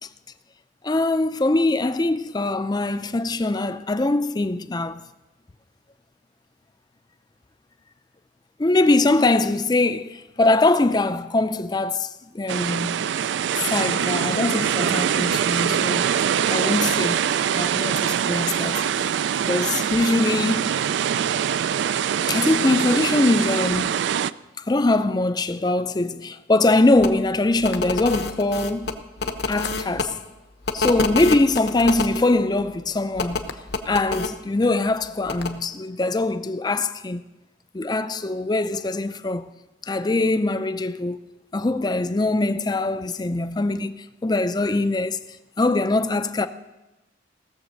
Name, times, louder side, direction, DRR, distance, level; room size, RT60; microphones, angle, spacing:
voice 1, 0.8-5.0 8.6-13.1 13.6-17.3 17.5-19.1 19.5-20.8 22.3-23.9 24.7-28.9 29.5-30.2 30.7-33.5 33.9-37.2 37.7-39.5 39.8-41.2 41.5-45.2 45.6-46.5, left 2 dB, 20° left, 0.4 m, -22 dB
sound 1, 12.5-24.3, right 8 dB, 65° right, 0.3 m, -23 dB
sound 2, 27.0-27.1 27.6-30.0 30.7-32.2 33.2-34.3 35.3-35.5, left 3 dB, 60° left, 0.9 m, -27 dB
16.5 x 7.1 x 6.4 m
head